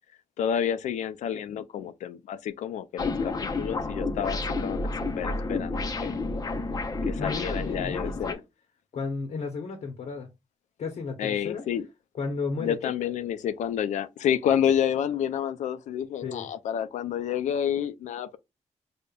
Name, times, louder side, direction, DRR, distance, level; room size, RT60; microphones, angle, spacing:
voice 1, 0.4-4.8 5.2-6.1 7.1-8.4 11.2-11.9 12.6-18.4, left 9 dB, 85° left, 0.4 m, -29 dB
sound 1, 3.0-8.3, left 3 dB, 30° left, 0.5 m, -30 dB
voice 2, 7.2-8.4 8.9-10.3 10.8-11.6 12.2-12.9 16.2-16.5, left 4 dB, 70° left, 0.7 m, -33 dB
5.0 x 2.1 x 2.2 m
cardioid pair, 105°, 12 cm